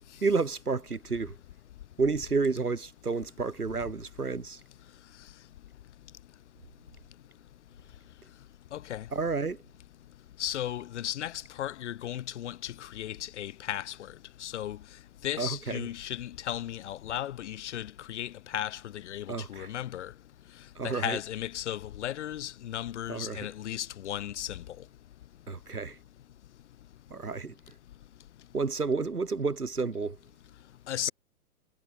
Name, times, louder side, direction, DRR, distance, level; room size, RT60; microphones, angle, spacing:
voice 1, 0.2-1.4 2.0-4.6 9.1-9.6 15.4-15.8 19.3-19.7 20.8-21.2 23.1-23.5 25.5-26.0 27.1-27.5 28.5-30.2, right 4 dB, 85° right, 2.2 m, -30 dB
voice 2, 8.7-9.1 10.4-14.1 14.4-14.8 15.2-20.1 20.8-24.6 30.9-31.1, left 12 dB, 50° left, 2.4 m, -35 dB
figure-of-eight pair, 115°, 45 cm